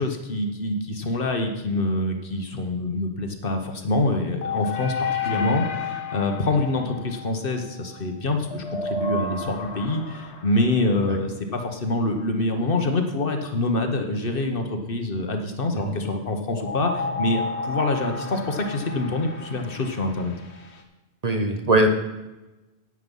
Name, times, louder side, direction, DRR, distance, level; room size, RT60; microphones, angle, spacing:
voice 1, 0.0-20.4, left 2 dB, 55° left, 5 dB, 1.3 m, -26 dB
sound 1, 4.4-8.0 8.5-11.0 16.5-20.8, left 4 dB, 70° left, 1.5 m, -32 dB
voice 2, 21.2-21.9, right 1 dB, 40° right, 5 dB, 0.8 m, -21 dB
9.5 x 9.0 x 5.4 m, 1.1 s
omnidirectional pair, 1.2 m